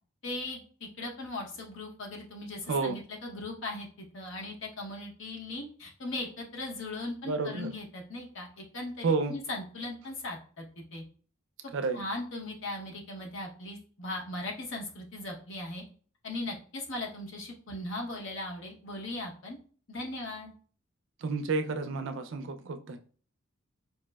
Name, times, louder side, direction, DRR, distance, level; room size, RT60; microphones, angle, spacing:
voice 1, 0.2-10.7 10.9-11.0 11.6-15.8 16.2-19.6 19.9-20.5, left 2 dB, 65° left, 0 dB, 0.8 m, -38 dB
voice 2, 2.7-3.0 7.2-7.7 9.0-9.4 11.7-12.0 21.2-23.0, right 4 dB, 60° right, 7 dB, 0.4 m, -30 dB
4.4 x 2.0 x 2.2 m, 0.42 s
head